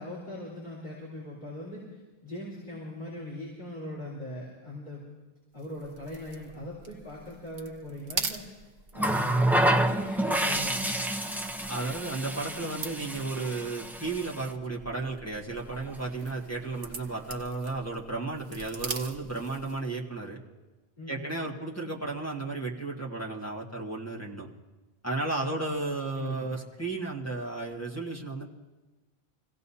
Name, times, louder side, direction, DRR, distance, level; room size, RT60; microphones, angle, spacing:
voice 1, 0.0-5.0 5.5-8.7 8.9-10.9 21.0-21.4 26.2-26.5, left 1 dB, 45° left, -8 dB, 4.2 m, -40 dB
sound 1, 5.6-19.9, right 4 dB, 70° right, 1.2 m, -43 dB
Water tap faucet, 9.0-14.5 15.7-15.9, right 1 dB, ahead, 0.6 m, -28 dB
voice 2, 11.7-20.4 21.1-24.5 25.0-28.5, right 3 dB, 15° left, -2 dB, 1.6 m, -34 dB
27.5 x 16.5 x 2.8 m, 1.2 s
omnidirectional pair, 1.0 m